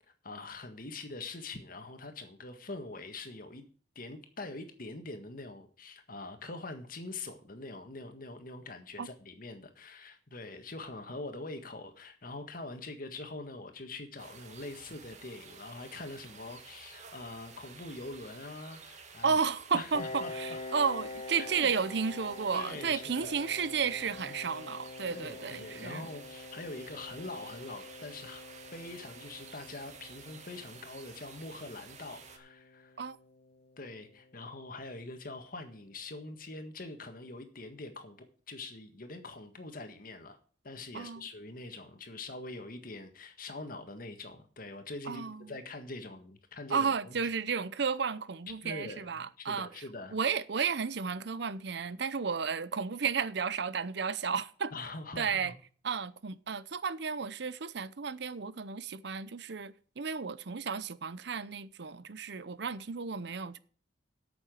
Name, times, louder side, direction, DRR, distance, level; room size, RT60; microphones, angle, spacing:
voice 1, 0.2-3.6 3.9-19.4 19.7-20.6 21.4-21.7 22.5-23.3 25.1-28.4 28.7-33.1 33.8-40.4 40.6-47.2 48.6-50.2 54.7-55.5, left 2 dB, 50° left, 1.7 m, -44 dB
sound 1, 14.2-32.4, right 5 dB, 40° right, 1.6 m, -52 dB
voice 2, 19.2-26.0 33.0-33.2 40.9-41.2 45.1-45.5 46.7-49.7 50.1-54.7 55.2-55.5 55.8-63.6, right 6 dB, 65° right, 0.7 m, -33 dB
Piano, 19.9-35.3, left 3 dB, 35° left, 1.4 m, -47 dB
8.8 x 7.1 x 8.2 m
head